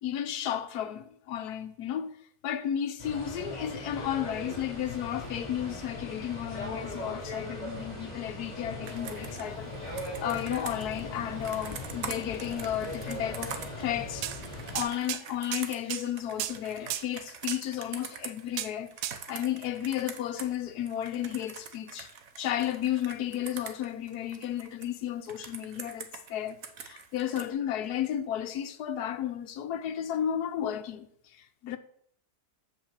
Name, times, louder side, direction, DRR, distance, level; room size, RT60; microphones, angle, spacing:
voice 1, 0.0-14.3 14.7-22.1 22.4-31.1 31.3-31.8, left 10 dB, 75° left, 1.3 m, -33 dB
sound 1, 3.0-14.8, left 1 dB, 25° left, 4.1 m, -39 dB
Computer keyboard, 8.8-20.6 20.9-24.9 25.3-27.5, right 6 dB, 60° right, 1.3 m, -44 dB
sound 2, 14.2-14.4 14.8-15.2 15.5-16.1 16.4-16.6 16.9-17.1 17.5-17.6 18.6-18.7 19.0-19.2, right 12 dB, 80° right, 1.2 m, -33 dB
7.7 x 5.6 x 7.4 m
omnidirectional pair, 1.7 m